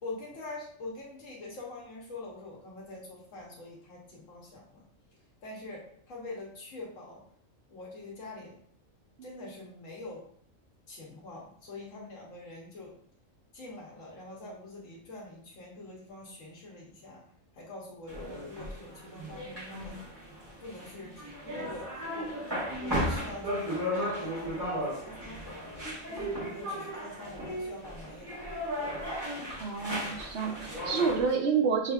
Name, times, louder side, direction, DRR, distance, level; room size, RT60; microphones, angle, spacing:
voice 1, 0.0-4.8 5.4-7.2 7.7-8.5 9.2-10.3 10.9-12.9 13.5-17.2 17.5-20.0 20.6-22.5 22.8-25.7 26.1-28.7, left 2 dB, 75° left, -3 dB, 1.2 m, -45 dB
sound 1, 18.1-31.3, equal, 20° right, 1.3 m, -36 dB
voice 2, 29.6-31.9, right 5 dB, 60° right, 2 dB, 0.8 m, -28 dB
5.7 x 2.7 x 2.3 m, 0.63 s
omnidirectional pair, 1.4 m